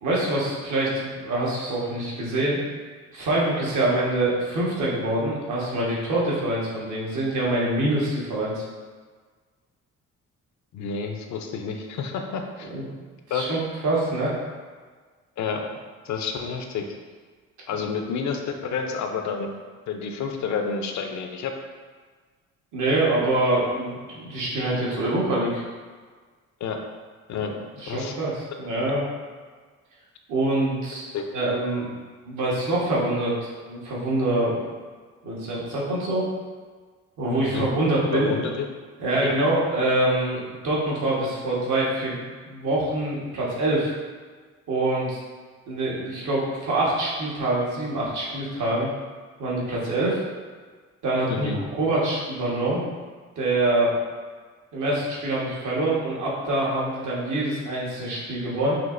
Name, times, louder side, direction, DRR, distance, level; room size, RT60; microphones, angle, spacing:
voice 1, 0.0-2.6 3.1-8.6 12.7-12.9 13.3-14.3 22.7-25.6 27.4-29.0 30.3-31.1 31.3-31.9 32.2-34.6 35.2-36.3 37.2-38.3 39.0-43.9 44.7-45.2 45.7-48.9 49.4-50.2 51.0-51.5 51.8-52.8 53.4-53.9 54.7-58.7, right 1 dB, 75° right, -6 dB, 1.4 m, -25 dB
voice 2, 10.7-12.7 13.3-13.5 15.4-15.7 16.0-16.9 17.7-19.5 19.9-21.5 26.6-26.8 27.3-27.5 27.9-28.1 31.1-31.2 37.4-37.7 38.1-38.7 39.2-39.3 51.3-51.6, left 5 dB, 70° left, 4 dB, 0.6 m, -29 dB
6.0 x 2.8 x 2.5 m, 1.5 s
cardioid pair, 90°, 30 cm